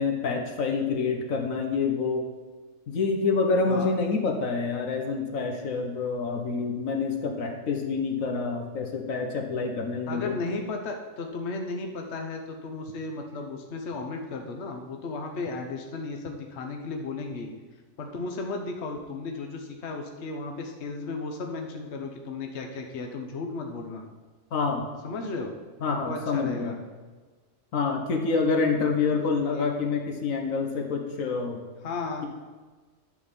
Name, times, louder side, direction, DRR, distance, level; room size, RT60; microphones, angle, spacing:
voice 1, 0.0-2.2 2.9-10.3 24.5-24.8 25.8-26.7 27.7-31.6, left 4 dB, 80° left, 3 dB, 1.5 m, -27 dB
voice 2, 10.1-17.5 18.0-24.0 25.0-25.5 25.9-26.7 29.5-29.7 31.8-32.3, left 3 dB, 55° left, 3 dB, 1.3 m, -34 dB
11.5 x 4.2 x 7.4 m, 1.3 s
omnidirectional pair, 1.4 m